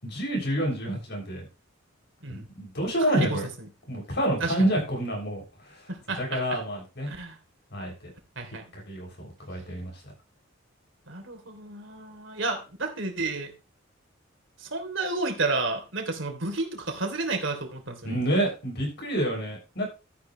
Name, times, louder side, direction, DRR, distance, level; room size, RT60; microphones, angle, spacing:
voice 1, 0.0-1.4 2.3-3.5 3.9-5.8 6.2-7.1 7.7-7.9 8.7-10.1 18.0-19.9, right 1 dB, 60° left, 0 dB, 6.9 m, -28 dB
voice 2, 3.1-3.4 4.4-4.5 5.9-6.6 7.1-7.4 8.4-8.6 11.1-13.5 14.6-18.2, right 3 dB, 70° right, 4 dB, 3.2 m, -31 dB
13.0 x 10.0 x 3.2 m, 0.30 s
head